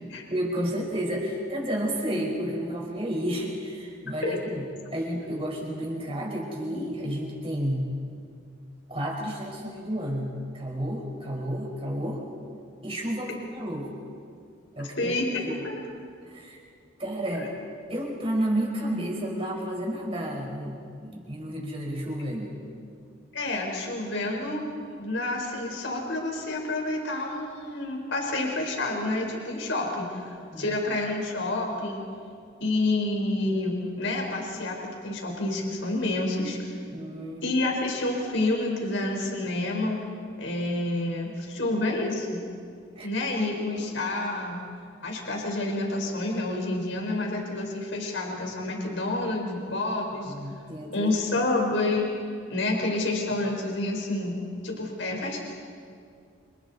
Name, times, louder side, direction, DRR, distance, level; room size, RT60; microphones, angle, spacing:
voice 1, 0.3-7.9 8.9-12.2 12.8-13.9 14.7-15.5 16.2-16.6 17.0-17.5 17.9-22.5 30.5-30.7 36.9-37.6 42.9-43.1 50.3-51.1, equal, 30° right, -2 dB, 5.0 m, -31 dB
voice 2, 15.0-15.7 23.3-24.6 24.9-32.0 32.6-36.6 37.4-40.0 40.4-42.4 43.0-44.6 45.0-50.3 50.9-52.1 52.5-54.4 54.6-55.5, left 2 dB, 70° left, 0 dB, 4.5 m, -28 dB
29.0 x 28.0 x 4.2 m, 2.4 s
head